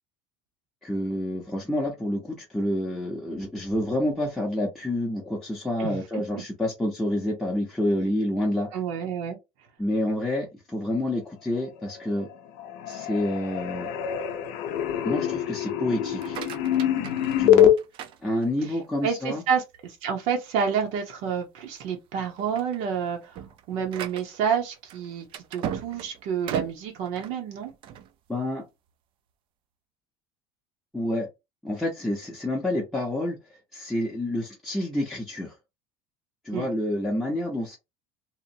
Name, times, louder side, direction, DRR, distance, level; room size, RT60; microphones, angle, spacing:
voice 1, 0.8-8.7 9.8-12.3 12.9-13.9 15.0-16.4 17.4-17.7 18.2-19.4 28.3-28.6 30.9-31.3 31.6-33.4 33.7-35.5 36.4-37.8, left 1 dB, ahead, 0.6 m, -28 dB
voice 2, 5.8-6.4 8.7-9.4 18.7-23.4 23.7-27.7 36.5-36.7, right 7 dB, 70° right, 0.7 m, -29 dB
sound 1, 11.8-12.3 12.6-17.7, left 11 dB, 70° left, 0.5 m, -24 dB
sound 2, 16.0-18.9 19.4-19.8 20.3-20.4 20.8-20.9 21.6-21.9 22.2-28.1, right 9 dB, 45° right, 0.4 m, -38 dB
2.8 x 2.0 x 2.6 m
cardioid pair, 150°, 12 cm